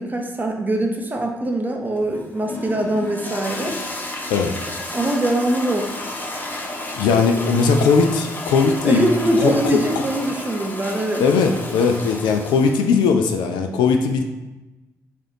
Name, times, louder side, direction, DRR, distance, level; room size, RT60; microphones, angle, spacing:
voice 1, 0.0-3.7 4.9-5.9 8.8-11.2, right 1 dB, 20° right, 2 dB, 0.6 m, -22 dB
Toilet flush, 2.0-13.0, left 2 dB, 20° left, 0.6 m, -32 dB
voice 2, 6.9-9.1 9.4-10.0 11.2-14.2, left 5 dB, 60° left, 5 dB, 0.3 m, -19 dB
3.2 x 2.5 x 3.7 m, 1.1 s
figure-of-eight pair, 40°, 9 cm